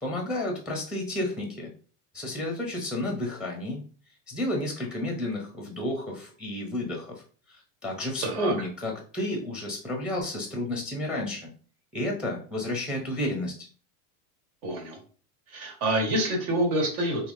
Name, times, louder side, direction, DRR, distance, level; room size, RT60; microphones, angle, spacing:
voice 1, 0.0-1.7 2.1-3.8 4.3-7.1 7.5-11.5 11.9-13.7, left 1 dB, ahead, 1 dB, 0.6 m, -31 dB
voice 2, 8.2-8.5 14.6-15.0 15.5-17.3, right 1 dB, 65° right, 0 dB, 1.6 m, -27 dB
3.4 x 2.8 x 2.6 m, 0.40 s
supercardioid pair, 120°, 47 cm